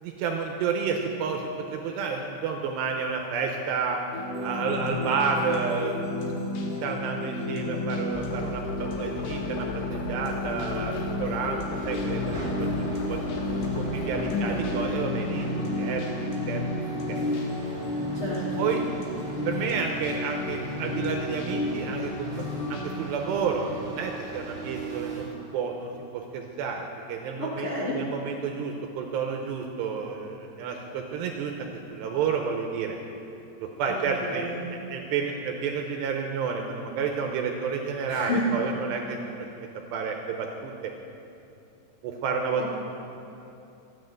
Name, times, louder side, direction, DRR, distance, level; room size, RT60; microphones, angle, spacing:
voice 1, 0.0-4.0 4.4-5.9 6.2-6.3 6.6-13.2 13.7-15.5 15.8-16.1 16.5-16.6 17.1-17.2 18.6-18.8 19.5-22.3 22.7-25.3 25.5-33.0 33.6-40.7 42.0-42.6, right 5 dB, 75° right, 3 dB, 2.7 m, -30 dB
sound 1, 4.1-23.0, left 2 dB, 65° left, 2.9 m, -31 dB
sound 2, 8.1-14.9, left 4 dB, 80° left, 2.0 m, -37 dB
sound 3, 11.7-25.3, right 3 dB, 20° right, 1.4 m, -39 dB
voice 2, 14.3-14.6 18.1-18.6 27.4-28.0 33.9-34.7 38.1-38.4 42.6-42.7, left 2 dB, 50° left, -7 dB, 1.6 m, -31 dB
13.5 x 9.4 x 7.8 m, 2.8 s
omnidirectional pair, 5.5 m